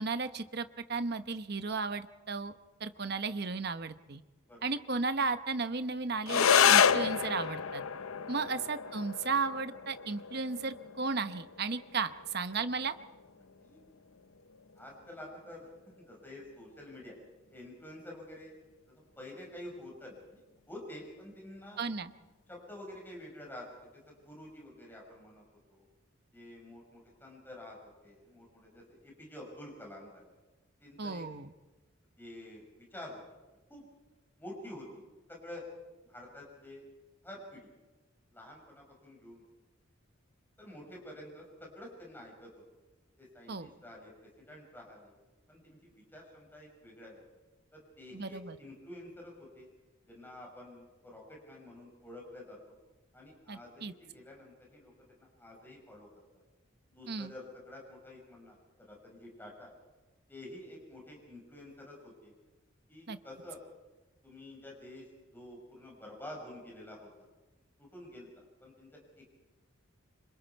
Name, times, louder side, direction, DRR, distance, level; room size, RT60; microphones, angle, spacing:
voice 1, 0.0-2.5 2.8-4.2 4.6-7.8 8.3-12.9 21.8-22.1 31.0-31.5 43.5-43.7 48.1-48.6 53.5-53.9 57.1-57.3 63.1-63.2, right 4 dB, 50° right, 10 dB, 1.0 m, -34 dB
sound 1, 6.2-15.2, left 7 dB, 85° left, 0.6 m, -30 dB
voice 2, 14.8-15.7 16.0-17.1 17.5-18.5 18.9-20.4 20.7-21.8 22.5-23.7 23.9-25.9 26.3-30.3 30.8-31.2 32.2-33.2 33.7-33.8 34.4-35.6 36.0-36.9 37.2-37.7 38.3-39.4 40.6-42.5 43.2-45.1 45.5-47.2 47.7-49.7 50.0-52.7 53.1-54.9 55.2-56.1 56.3-56.4 56.9-59.7 60.3-62.3 62.9-63.6 64.2-67.1 67.8-69.3, left 1 dB, 10° left, -2 dB, 5.6 m, -49 dB
26.5 x 26.0 x 4.7 m, 1.1 s
head